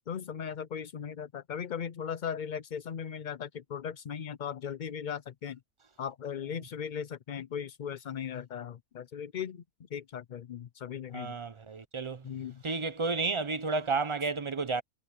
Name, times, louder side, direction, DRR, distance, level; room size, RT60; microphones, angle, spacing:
voice 1, 0.1-5.6 6.0-9.6 9.9-11.4 12.2-12.6, left 8 dB, 75° left, 0.4 m, -38 dB
voice 2, 11.1-12.2 12.6-14.8, right 4 dB, 40° right, 0.4 m, -31 dB
omnidirectional pair, 1.5 m